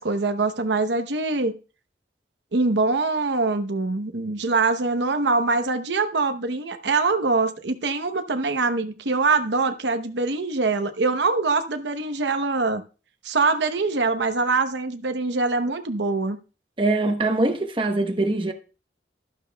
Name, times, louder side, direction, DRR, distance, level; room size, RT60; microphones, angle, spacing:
voice 1, 0.0-1.5 2.5-12.8 13.2-16.4, right 3 dB, 80° right, 0.9 m, -23 dB
voice 2, 16.8-18.5, right 2 dB, 30° right, 1.0 m, -23 dB
12.5 x 12.5 x 2.3 m
head